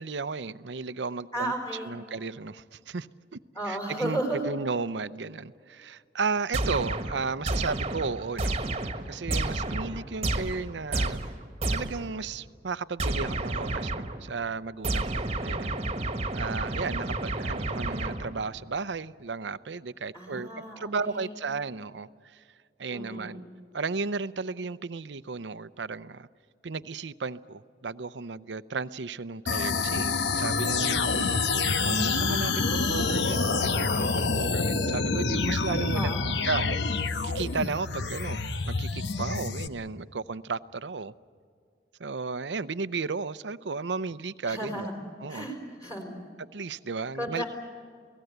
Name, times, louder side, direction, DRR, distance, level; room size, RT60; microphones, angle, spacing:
voice 1, 0.0-1.5 1.8-3.4 3.6-4.2 4.4-11.2 11.7-15.7 16.3-20.5 20.8-22.4 22.8-23.4 23.7-26.3 26.6-41.1 42.0-44.9 45.2-45.5 46.5-47.4, right 4 dB, 85° right, 15 dB, 0.7 m, -34 dB
voice 2, 1.3-2.0 3.5-4.4 15.1-15.5 20.1-21.4 22.9-23.5 35.9-36.3 44.5-45.0 45.3-46.1 47.2-47.4, right 1 dB, 20° left, 3 dB, 4.5 m, -34 dB
sound 1, 6.5-12.2 13.0-14.3 14.8-18.5, right 2 dB, 35° right, 1.4 m, -31 dB
sound 2, 29.5-39.7, left 4 dB, 85° left, 1.2 m, -27 dB
29.0 x 18.5 x 8.0 m, 2.2 s
head